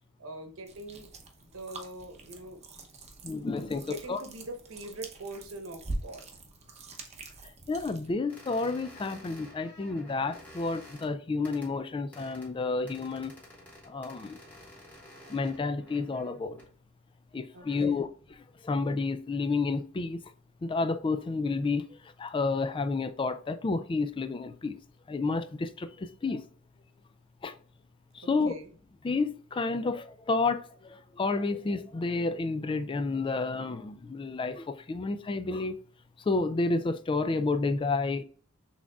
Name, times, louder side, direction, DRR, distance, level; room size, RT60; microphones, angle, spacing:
voice 1, 0.2-1.1 1.4-2.6 3.8-6.3 17.5-18.0 28.2-28.7, right 2 dB, 70° right, 1.0 m, -43 dB
sound 1, 0.7-8.1, right 2 dB, 30° right, 0.7 m, -44 dB
voice 2, 3.2-4.2 7.7-13.3 13.9-14.4 15.3-16.6 17.3-18.1 18.6-20.2 20.6-21.9 22.2-24.8 25.1-26.4 27.4-27.5 28.1-28.5 29.0-35.8 36.3-38.2, left 3 dB, 25° left, 0.3 m, -30 dB
sound 2, 8.3-11.1 11.4-11.7 12.1-12.5 12.9-16.7 17.5-17.8, left 1 dB, 10° left, 1.7 m, -51 dB
6.1 x 3.6 x 2.3 m
head